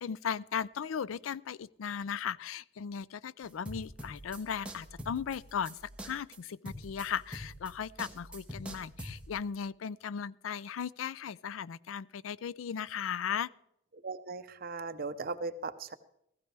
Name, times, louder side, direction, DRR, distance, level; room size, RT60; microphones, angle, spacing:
voice 1, 0.0-5.8 6.0-13.5, left 7 dB, 90° left, 0.4 m, -37 dB
sound 1, 3.4-9.3, equal, 5° right, 1.3 m, -45 dB
voice 2, 14.0-15.9, right 3 dB, 50° right, 0.7 m, -38 dB
15.5 x 15.0 x 3.4 m
head